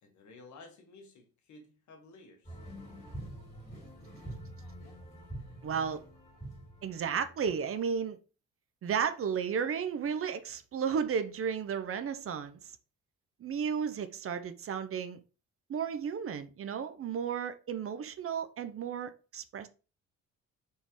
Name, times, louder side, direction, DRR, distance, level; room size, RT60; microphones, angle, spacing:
voice 1, 0.0-2.6, left 3 dB, 70° left, 1.4 m, -54 dB
sound 1, 2.4-7.6, right 1 dB, 20° left, 2.5 m, -46 dB
voice 2, 5.6-6.0 6.8-8.2 8.8-12.7 13.4-15.2 15.7-19.7, right 7 dB, 45° right, 0.6 m, -33 dB
4.4 x 3.5 x 3.0 m
cardioid pair, 90°, 30 cm